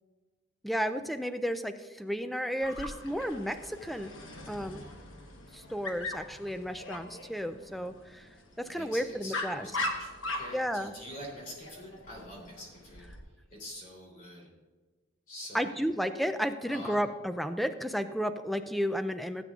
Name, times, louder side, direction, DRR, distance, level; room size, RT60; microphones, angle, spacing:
voice 1, 0.6-4.1 4.5-4.9 5.5-8.3 8.6-9.7 10.5-10.9 15.5-19.4, equal, ahead, 10 dB, 0.3 m, -33 dB
Dog, 2.6-13.2, left 2 dB, 85° left, 1.2 m, -41 dB
voice 2, 8.7-13.1 13.6-14.5 15.3-15.8 16.7-17.0, equal, 45° left, -3 dB, 3.3 m, -45 dB
16.0 x 8.2 x 2.4 m, 1.3 s
head